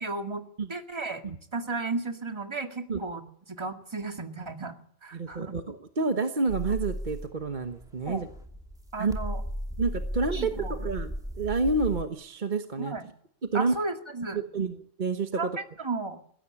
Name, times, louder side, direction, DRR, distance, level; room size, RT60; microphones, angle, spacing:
voice 1, 0.0-0.4 0.7-1.2 1.5-3.2 3.5-4.8 5.0-5.5 8.1-8.2 8.9-9.4 10.3-10.7 12.8-13.1 13.5-14.4 15.4-16.2, right 3 dB, 20° right, 5 dB, 2.1 m, -34 dB
voice 2, 5.1-8.3 9.0-9.2 9.8-12.9 13.4-13.7 14.3-15.5, right 3 dB, 40° right, 6 dB, 1.3 m, -29 dB
sound 1, 6.5-12.0, equal, 5° right, 2.6 m, -35 dB
20.5 x 16.5 x 9.9 m, 0.66 s
omnidirectional pair, 1.4 m